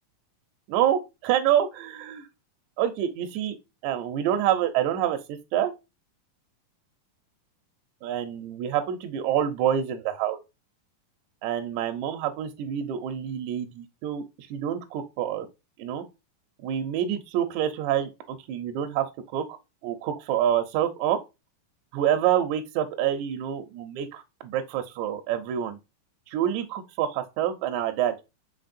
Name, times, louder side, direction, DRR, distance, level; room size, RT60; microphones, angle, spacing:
voice 1, 0.7-2.3 2.8-3.6 3.8-5.7 8.0-10.4 11.4-14.2 14.5-15.5 15.8-16.0 16.6-19.6 19.8-21.2 21.9-25.8 26.3-28.2, right 10 dB, 80° right, 1.7 m, -27 dB
5.1 x 4.0 x 2.5 m
omnidirectional pair, 4.0 m